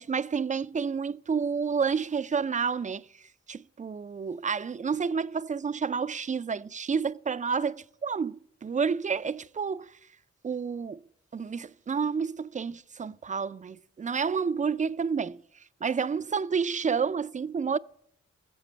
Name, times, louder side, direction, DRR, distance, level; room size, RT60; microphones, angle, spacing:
voice 1, 0.0-3.1 3.5-10.0 10.4-11.0 11.3-15.4 15.8-17.8, right 6 dB, 25° right, 0.3 m, -30 dB
18.0 x 7.3 x 3.3 m
cardioid pair, 45°, 29 cm